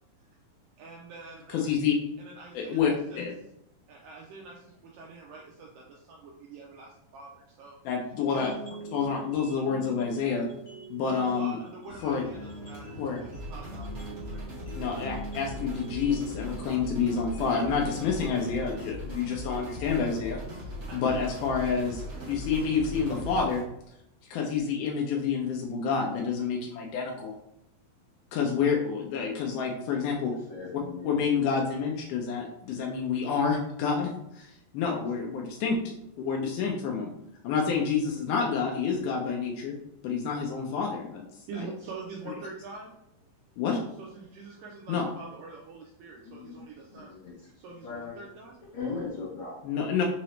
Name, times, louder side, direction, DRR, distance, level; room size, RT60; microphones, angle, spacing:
voice 1, 0.8-1.7 2.2-3.2 3.9-7.8 8.3-8.5 11.0-14.5 20.9-21.3 41.5-42.9 43.2-43.3 44.0-47.2 47.6-48.6, right 4 dB, 80° right, -2 dB, 2.1 m, -45 dB
voice 2, 1.5-2.0 2.5-3.3 7.9-8.5 8.9-10.5 10.9-11.6 12.0-12.2 13.0-13.2 14.7-20.4 20.9-23.6 24.3-27.3 28.3-30.3 31.0-37.1 37.4-39.7 40.0-41.2 41.6-41.7 43.6-43.8 44.9-45.1 49.6-50.1, left 6 dB, 90° left, 0 dB, 1.8 m, -28 dB
sound 1, 8.3-20.3, right 3 dB, 40° left, 2.1 m, -45 dB
sound 2, 11.9-23.4, right 1 dB, 65° right, 2.5 m, -47 dB
sound 3, 13.3-23.6, equal, 45° right, 1.2 m, -40 dB
voice 3, 30.1-31.2 35.2-35.3 46.2-46.6 47.1-47.3 47.8-48.2 48.7-49.6, left 4 dB, 65° left, -6 dB, 1.9 m, -38 dB
5.9 x 2.8 x 3.2 m, 0.80 s
omnidirectional pair, 4.4 m